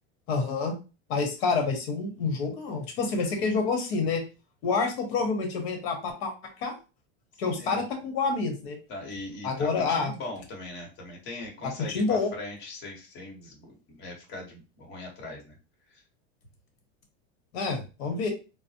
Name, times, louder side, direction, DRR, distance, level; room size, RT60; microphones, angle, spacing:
voice 1, 0.3-0.7 1.1-4.2 4.6-6.7 7.4-8.8 9.4-10.1 11.6-12.3 17.5-18.3, left 4 dB, 65° left, 3 dB, 1.2 m, -28 dB
voice 2, 8.9-13.7 14.0-15.5, left 2 dB, 40° left, 0 dB, 1.3 m, -40 dB
4.0 x 2.1 x 2.8 m, 0.31 s
supercardioid pair, 155°, 32 cm